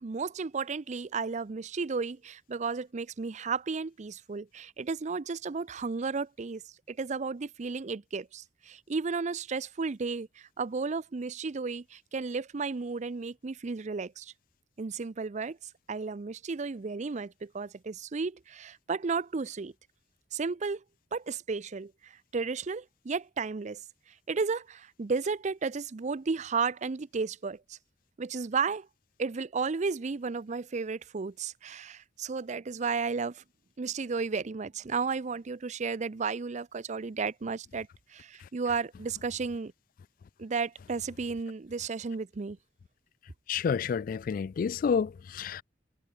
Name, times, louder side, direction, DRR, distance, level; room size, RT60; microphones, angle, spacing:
voice 1, 0.0-6.6 6.9-14.3 14.8-15.6 15.9-19.7 20.3-20.8 21.1-23.8 24.3-27.8 28.2-28.9 29.2-33.4 33.8-39.7 40.4-42.6, right 4 dB, 40° right, 0.5 m, -33 dB
voice 2, 43.5-45.6, left 6 dB, 50° left, 0.3 m, -29 dB
head